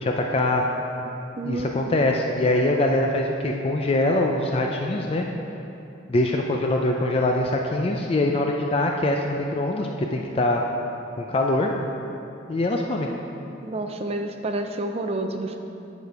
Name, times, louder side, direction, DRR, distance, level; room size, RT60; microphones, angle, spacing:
voice 1, 0.0-0.6 1.5-5.3 6.1-10.6 11.2-11.7 12.5-13.1, left 2 dB, 30° left, 1 dB, 0.4 m, -23 dB
voice 2, 1.4-1.8 13.6-15.6, right 2 dB, 35° right, 5 dB, 0.4 m, -29 dB
8.9 x 5.1 x 4.6 m, 2.9 s
head